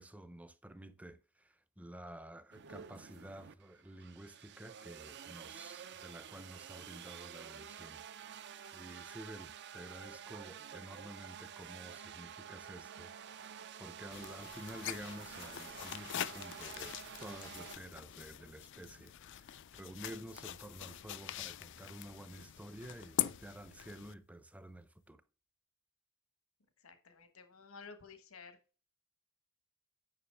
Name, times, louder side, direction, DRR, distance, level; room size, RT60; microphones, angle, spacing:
voice 1, 0.0-8.4 8.7-13.5 13.8-16.9 17.2-25.2, right 1 dB, 5° right, 0.6 m, -51 dB
sound 1, 2.5-17.8, right 8 dB, 55° right, 0.6 m, -50 dB
sound 2, 14.1-24.1, left 11 dB, 60° left, 0.4 m, -43 dB
voice 2, 26.8-28.6, left 5 dB, 80° left, 1.3 m, -53 dB
9.7 x 6.0 x 3.4 m
head